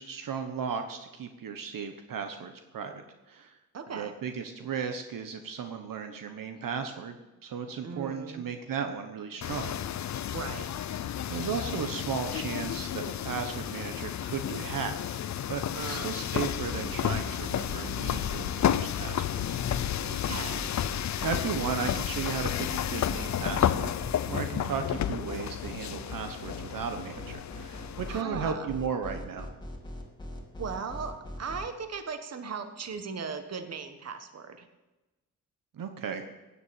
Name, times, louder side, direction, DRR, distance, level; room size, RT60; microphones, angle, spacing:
voice 1, 0.0-3.0 3.3-3.5 3.9-7.2 7.4-9.8 11.3-15.2 15.5-19.6 21.2-23.9 24.2-29.5 35.7-36.2, right 6 dB, 70° right, 6 dB, 1.2 m, -35 dB
voice 2, 3.7-4.1 7.8-8.4 10.3-10.7 15.7-16.1 20.1-20.6 25.2-25.3 28.1-28.7 30.6-34.7, right 5 dB, 45° right, 8 dB, 1.5 m, -38 dB
sound 1, 9.4-28.2, left 10 dB, 55° left, 0.6 m, -32 dB
sound 2, 16.7-31.7, left 1 dB, 10° left, 2.3 m, -41 dB
17.0 x 7.2 x 8.9 m, 1.1 s
wide cardioid pair, 145°, 34 cm